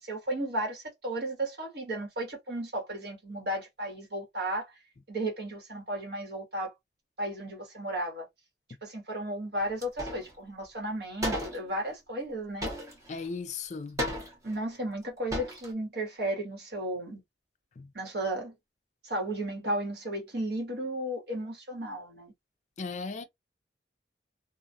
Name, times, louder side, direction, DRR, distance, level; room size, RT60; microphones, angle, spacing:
voice 1, 0.0-4.7 5.1-6.7 7.2-8.3 8.8-12.7 14.4-17.2 17.9-18.5 19.0-22.3, right 1 dB, 60° right, 1.3 m, -34 dB
sound 1, 9.8-10.3 10.6-10.7 11.2-11.7 12.6-13.3 14.0-14.6 15.0-15.1 15.3-15.7, equal, 20° right, 0.8 m, -34 dB
voice 2, 13.1-14.0 17.8-17.9 22.8-23.2, left 4 dB, 40° left, 0.4 m, -36 dB
2.4 x 2.3 x 2.6 m
head